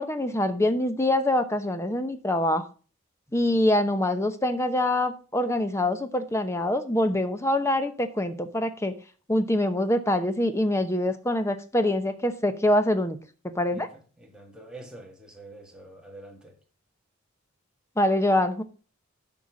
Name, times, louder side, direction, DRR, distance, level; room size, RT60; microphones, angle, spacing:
voice 1, 0.0-2.6 3.3-8.9 9.3-13.2 13.5-13.9 18.0-18.6, left 1 dB, 15° left, 0.8 m, -24 dB
voice 2, 13.7-16.6, right 2 dB, 5° right, 1.7 m, -46 dB
11.5 x 4.4 x 6.2 m
head